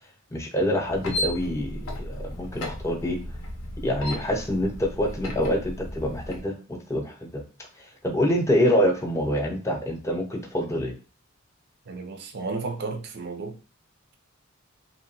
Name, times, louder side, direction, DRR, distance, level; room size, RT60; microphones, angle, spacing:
voice 1, 0.3-3.2 3.8-7.4 8.0-10.9, equal, 15° left, 0.4 m, -26 dB
sound 1, 0.9-6.4, left 1 dB, 70° left, 0.5 m, -35 dB
voice 2, 11.9-13.6, right 3 dB, 50° right, 0.4 m, -33 dB
2.7 x 2.1 x 2.6 m
head